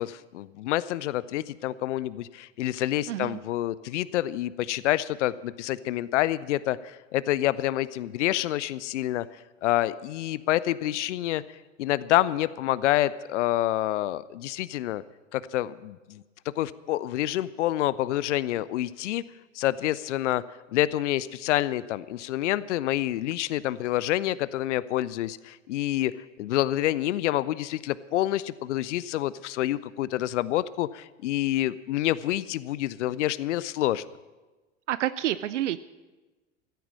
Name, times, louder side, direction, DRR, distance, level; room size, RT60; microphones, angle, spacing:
voice 1, 0.0-9.3 9.6-11.4 11.8-15.0 15.3-16.2 16.6-19.2 19.5-20.4 20.7-34.1, left 14 dB, 70° left, 19 dB, 0.5 m, -27 dB
voice 2, 3.1-3.4 34.9-35.8, right 13 dB, 70° right, 16 dB, 0.5 m, -28 dB
15.0 x 9.1 x 7.4 m, 1.2 s
figure-of-eight pair, 75°, 38 cm